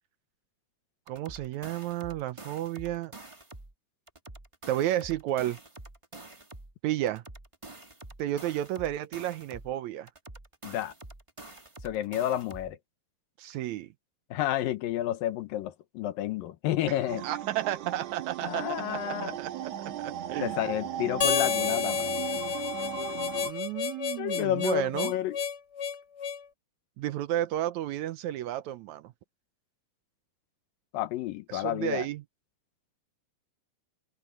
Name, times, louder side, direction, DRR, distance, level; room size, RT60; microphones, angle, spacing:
sound 1, 1.1-3.7 4.1-6.7 7.1-9.7 10.1-12.7, right 2 dB, 30° right, 0.5 m, -47 dB
voice 1, 1.1-3.1 4.7-5.6 6.8-7.2 8.2-10.1 13.4-13.9 17.2-19.5 20.0-20.6 23.4-25.1 27.0-29.1 31.5-32.2, right 13 dB, 80° right, 1.7 m, -32 dB
voice 2, 10.6-10.9 11.8-12.8 14.3-17.3 18.4-19.4 20.4-22.1 24.2-25.4 30.9-32.1, left 13 dB, 85° left, 2.8 m, -30 dB
sound 2, 17.1-23.5, right 10 dB, 60° right, 2.3 m, -37 dB
Harmonica, 21.2-26.4, left 7 dB, 50° left, 1.8 m, -30 dB
omnidirectional pair, 4.0 m